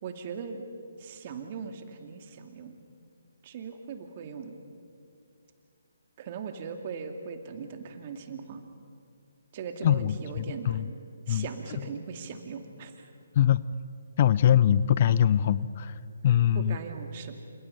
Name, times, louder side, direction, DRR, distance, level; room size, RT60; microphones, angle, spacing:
voice 1, 0.0-0.6 1.0-2.8 3.4-4.6 6.2-8.6 9.5-10.9 11.3-13.1 14.3-14.4 16.3-17.4, right 5 dB, 35° right, 5 dB, 2.6 m, -39 dB
voice 2, 9.8-10.9 11.3-11.5 13.4-13.6 14.2-15.9 16.2-16.8, left 10 dB, 40° left, 17 dB, 0.6 m, -23 dB
29.0 x 27.5 x 5.8 m, 2.5 s
figure-of-eight pair, 140°, 0 cm